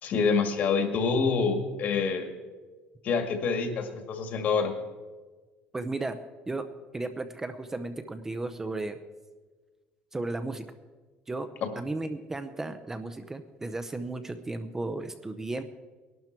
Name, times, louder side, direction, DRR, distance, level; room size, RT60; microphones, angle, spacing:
voice 1, 0.0-2.3 3.0-4.7 11.6-11.7, left 5 dB, 50° left, 6 dB, 2.0 m, -26 dB
voice 2, 5.7-6.2 6.5-6.7 6.9-9.0 10.1-10.6 11.3-11.5 11.8-15.6, right 2 dB, 10° right, 9 dB, 0.7 m, -34 dB
20.0 x 12.0 x 4.5 m, 1.4 s
cardioid pair, 160°, 4 cm